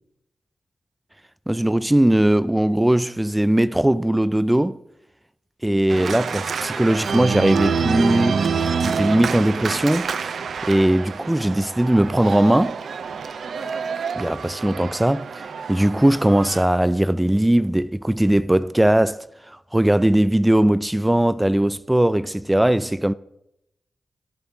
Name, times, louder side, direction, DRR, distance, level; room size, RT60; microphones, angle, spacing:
voice 1, 1.5-4.8 5.6-8.5 8.8-10.3 10.6-12.8 14.1-23.1, right 1 dB, 10° right, 0.4 m, -19 dB
Organ, 5.9-16.6, right 5 dB, 80° right, 0.6 m, -27 dB
13.5 x 9.6 x 3.8 m
cardioid pair, 60°, 0 cm